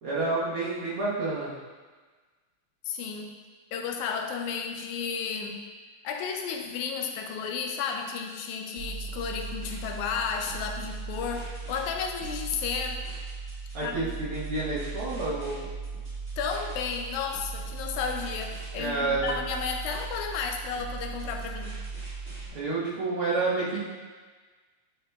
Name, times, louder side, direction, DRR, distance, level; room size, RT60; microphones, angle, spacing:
voice 1, 0.0-1.5 13.7-15.6 18.8-19.3 22.5-23.8, right 3 dB, 55° right, -9 dB, 1.8 m, -29 dB
voice 2, 2.8-3.3 3.7-5.6 6.0-13.0 13.8-14.1 16.4-21.8, left 6 dB, 80° left, 3 dB, 1.9 m, -33 dB
sound 1, 8.8-22.5, right 4 dB, 30° right, 1.6 m, -38 dB
8.5 x 5.0 x 2.3 m, 1.4 s
omnidirectional pair, 3.6 m